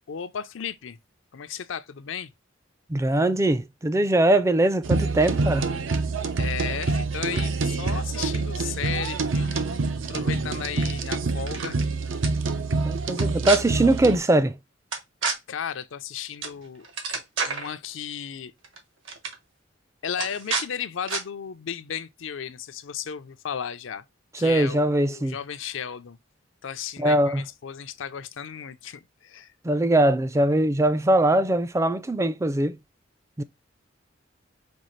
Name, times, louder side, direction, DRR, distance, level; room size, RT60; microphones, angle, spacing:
voice 1, 0.1-1.0 1.3-2.3 6.4-9.6 10.1-11.8 15.5-16.9 17.5-18.5 20.0-24.0 24.4-26.2 26.6-29.5, left 8 dB, 80° left, 0.5 m, -34 dB
voice 2, 2.9-5.7 12.8-14.5 24.4-25.3 27.0-27.4 29.6-32.8 33.4-33.5, right 1 dB, 15° right, 0.4 m, -21 dB
sound 1, 4.8-14.2, right 3 dB, 90° right, 0.6 m, -26 dB
sound 2, 11.4-11.8 12.2-12.3 13.1-13.6 14.9-15.4 16.4-16.6 16.8-17.7 18.6-18.8 19.1-19.3 20.2-20.7 21.1-21.2, right 5 dB, 75° right, 1.2 m, -29 dB
5.3 x 2.4 x 3.0 m
head